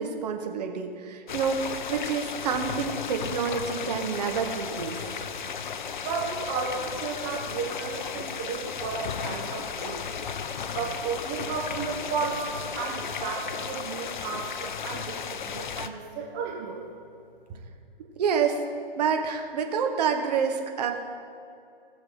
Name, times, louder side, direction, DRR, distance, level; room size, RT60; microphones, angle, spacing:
voice 1, 0.0-5.0 18.2-18.6 19.0-20.9, right 6 dB, 45° right, 4 dB, 1.4 m, -28 dB
sound 1, 1.3-15.9, left 6 dB, 55° left, 0.7 m, -35 dB
voice 2, 6.0-10.1 10.6-12.5 12.7-16.9 17.5-17.6, right 5 dB, 10° right, -1 dB, 0.3 m, -33 dB
19.0 x 6.9 x 4.4 m, 2.4 s
figure-of-eight pair, 125°, 29 cm